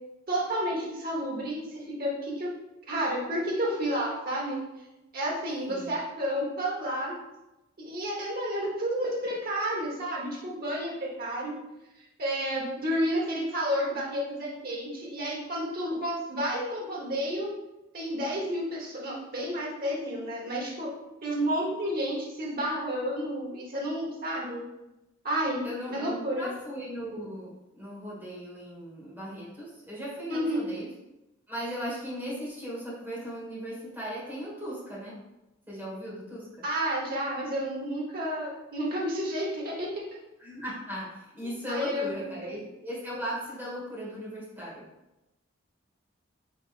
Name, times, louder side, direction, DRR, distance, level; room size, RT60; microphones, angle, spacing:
voice 1, 0.3-2.5 2.9-4.6 5.1-7.1 7.8-11.6 12.2-17.5 17.9-20.9 21.2-24.6 25.2-26.5 30.3-30.6 36.6-40.0 41.7-42.1 42.4-42.5, equal, 50° right, -3 dB, 1.1 m, -31 dB
voice 2, 25.6-30.9 31.5-35.2 35.7-36.5 40.4-44.8, equal, 10° right, -7 dB, 1.5 m, -37 dB
4.7 x 3.4 x 2.5 m, 0.96 s
head